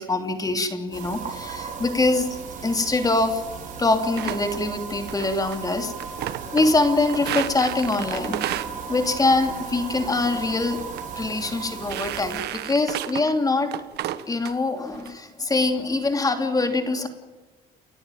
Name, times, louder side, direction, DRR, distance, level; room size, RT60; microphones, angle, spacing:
voice 1, 0.0-3.4 3.8-5.9 6.5-10.8 11.2-13.7 14.3-17.1, left 2 dB, 20° left, 6 dB, 3.0 m, -24 dB
sound 1, 0.9-12.4, right 6 dB, 50° right, 5.6 m, -36 dB
sound 2, 4.2-4.6 5.1-5.6 5.9-6.8 7.1-8.7 9.3-9.6 9.9-10.3 10.8-11.0 11.3-11.4 11.8-13.3 13.7-14.5 14.9-15.1 15.5-16.0, right 13 dB, 75° right, 1.4 m, -32 dB
29.5 x 14.5 x 9.2 m, 1.3 s
cardioid pair, 110°, 17 cm